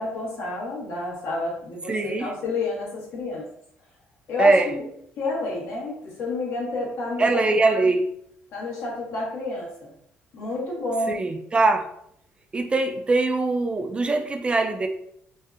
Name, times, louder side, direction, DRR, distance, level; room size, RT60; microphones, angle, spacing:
voice 1, 0.0-3.5 4.3-4.9 5.2-7.8 8.5-9.9 10.3-11.2, left 2 dB, 70° left, -3 dB, 1.0 m, -30 dB
voice 2, 1.9-2.3 4.4-4.7 7.2-8.1 11.1-11.8 12.5-14.9, right 3 dB, 25° right, 5 dB, 0.3 m, -22 dB
2.6 x 2.3 x 2.3 m, 0.70 s
cardioid pair, 95°, 4 cm